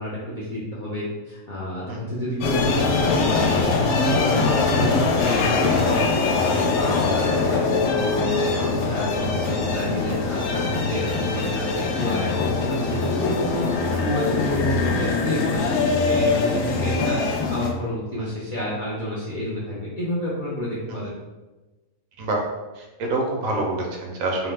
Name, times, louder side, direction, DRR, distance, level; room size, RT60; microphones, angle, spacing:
voice 1, 0.0-3.6 4.0-6.1 6.3-13.7 14.0-15.7 16.0-21.1, equal, 65° left, -7 dB, 0.5 m, -29 dB
sound 1, 2.4-17.7, left 4 dB, 85° left, 1.0 m, -22 dB
voice 2, 22.8-24.5, right 2 dB, 75° right, 0 dB, 1.0 m, -27 dB
2.8 x 2.0 x 3.2 m, 1.2 s
omnidirectional pair, 1.5 m